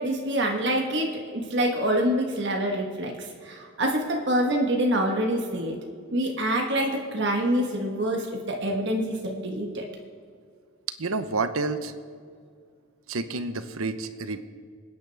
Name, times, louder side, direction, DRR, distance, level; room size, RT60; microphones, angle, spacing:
voice 1, 0.0-5.8 6.1-9.8, right 1 dB, 55° right, 1 dB, 1.4 m, -26 dB
voice 2, 11.0-11.9 13.1-14.5, right 3 dB, 80° right, 10 dB, 0.9 m, -29 dB
26.0 x 10.0 x 3.4 m, 2.1 s
head